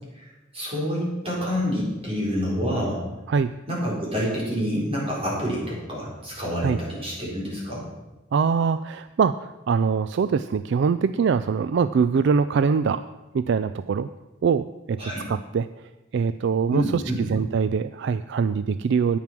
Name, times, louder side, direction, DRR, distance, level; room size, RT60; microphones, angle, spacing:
voice 1, 0.5-3.0 3.7-7.8 15.0-15.2 16.7-17.2, equal, 30° right, -5 dB, 4.6 m, -27 dB
voice 2, 8.3-13.0 13.3-14.1 14.4-15.0 15.3-15.7 16.1-19.2, right 5 dB, 60° right, 13 dB, 0.3 m, -23 dB
10.5 x 9.2 x 6.0 m, 1.1 s
head